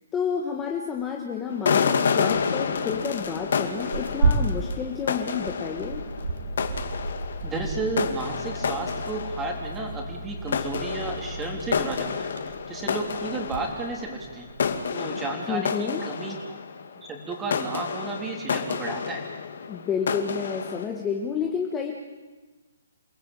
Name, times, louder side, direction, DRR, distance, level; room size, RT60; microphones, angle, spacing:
voice 1, 0.1-6.0 15.5-16.0 19.7-21.9, left 6 dB, 10° left, 0 dB, 1.6 m, -30 dB
sound 1, 1.5-10.2 10.5-17.1 17.3-20.9, left 6 dB, 55° left, 2.5 m, -30 dB
Tearing, 2.2-14.8, right 3 dB, 70° right, 4.3 m, -33 dB
sound 2, 5.8-12.0, right 1 dB, 55° right, 3.3 m, -39 dB
voice 2, 7.4-14.5 14.9-16.6 17.0-19.2, right 3 dB, 10° right, 1 dB, 3.4 m, -33 dB
28.5 x 19.0 x 9.0 m, 1.3 s
hypercardioid pair, 170°, 0 cm